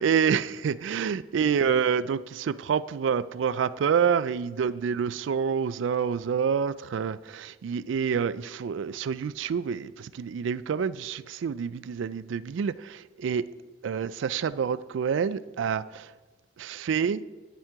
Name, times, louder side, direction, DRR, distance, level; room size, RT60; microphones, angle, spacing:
voice 1, 0.0-13.5 13.8-16.1 16.6-17.2, right 7 dB, 80° right, 0.3 m, -27 dB
11.0 x 7.4 x 4.6 m
head